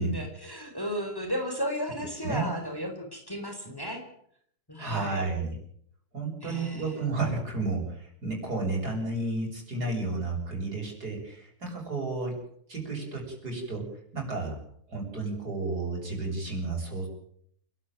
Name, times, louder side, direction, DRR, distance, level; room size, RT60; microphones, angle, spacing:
voice 1, 0.0-4.0 4.7-5.2 6.4-6.9, equal, 15° left, 4 dB, 4.2 m, -34 dB
voice 2, 4.8-5.6 6.1-12.4 12.7-13.9 14.1-14.6 14.9-17.1, right 3 dB, 90° right, 0 dB, 7.9 m, -32 dB
28.5 x 13.0 x 9.1 m, 0.67 s
omnidirectional pair, 1.6 m